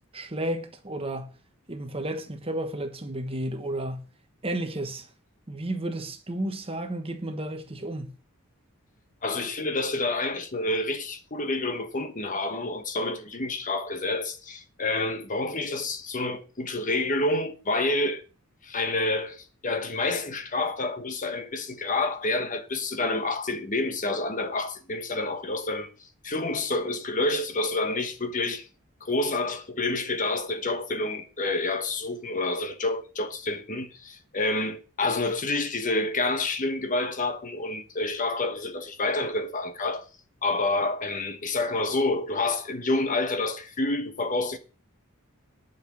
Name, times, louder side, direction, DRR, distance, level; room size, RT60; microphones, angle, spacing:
voice 1, 0.1-1.3 1.7-4.0 4.4-5.1 5.5-8.1, right 1 dB, 25° right, 1.3 m, -32 dB
voice 2, 9.2-18.2 18.6-25.9 26.2-28.7 29.0-40.0 40.4-44.6, left 2 dB, 35° left, 1.2 m, -28 dB
10.5 x 5.9 x 7.5 m
head